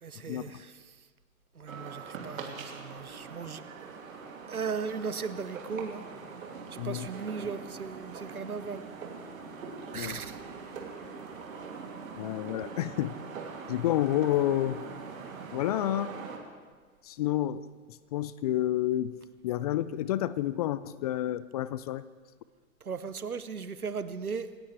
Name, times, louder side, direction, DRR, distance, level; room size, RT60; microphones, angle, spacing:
voice 1, 0.0-0.9 1.5-3.6 4.5-6.0 6.8-8.8 9.9-10.4 22.8-24.5, right 5 dB, 85° right, 13 dB, 1.0 m, -37 dB
sound 1, 1.7-16.4, right 5 dB, 65° right, 2.8 m, -42 dB
voice 2, 12.2-13.2 13.7-14.8 15.5-16.1 17.0-19.2 19.4-22.0, left 13 dB, 30° left, 17 dB, 0.4 m, -29 dB
27.0 x 16.0 x 3.3 m, 1.5 s
figure-of-eight pair, 95°, 43 cm